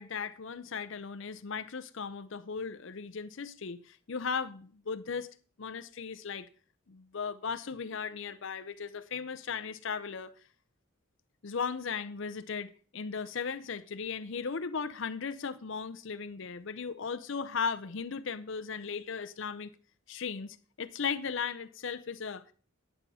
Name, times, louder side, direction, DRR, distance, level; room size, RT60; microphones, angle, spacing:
voice 1, 0.0-5.3 5.6-6.5 6.9-10.3 11.4-19.7 20.1-22.4, left 5 dB, 60° left, 0.6 m, -37 dB
11.0 x 6.9 x 5.6 m
head